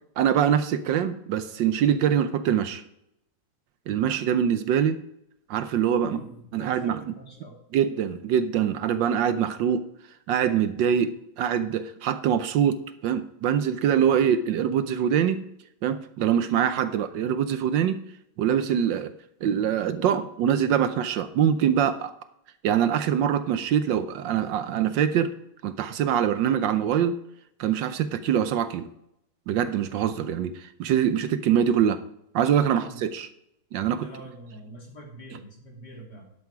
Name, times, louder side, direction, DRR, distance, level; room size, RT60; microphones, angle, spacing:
voice 1, 0.2-2.8 3.9-5.0 5.5-6.2 6.5-7.0 7.7-9.9 10.3-15.4 15.8-18.0 18.4-19.1 19.4-22.1 22.6-25.3 25.6-27.1 27.6-28.9 29.5-32.0 32.3-33.3 33.7-34.1, right 9 dB, 75° right, 12 dB, 1.3 m, -24 dB
voice 2, 6.0-7.6 32.6-33.0 34.0-36.3, equal, 55° left, -2 dB, 3.6 m, -44 dB
12.0 x 7.1 x 4.9 m, 0.78 s
omnidirectional pair, 2.1 m